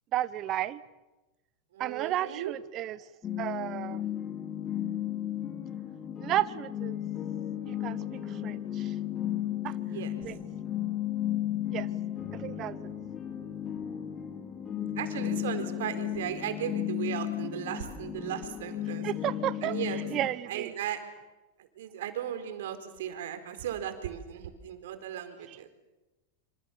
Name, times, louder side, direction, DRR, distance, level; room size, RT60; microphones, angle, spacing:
voice 1, 0.1-0.8 1.8-3.0 3.4-4.0 6.2-7.0 7.6-8.0 8.4-8.9 9.6-9.7 10.2-10.4 11.7-11.9 12.3-12.8 19.0-19.7 20.1-20.7, right 13 dB, 40° right, 16 dB, 1.0 m, -32 dB
voice 2, 1.7-2.5 9.8-10.1 15.0-19.0 19.6-20.0 20.5-21.0 21.8-25.7, right 10 dB, 70° right, 8 dB, 4.2 m, -36 dB
sound 1, 3.2-20.3, left 11 dB, 30° left, 4.9 m, -34 dB
27.0 x 26.5 x 7.2 m, 1.1 s
hypercardioid pair, 95°, 0 cm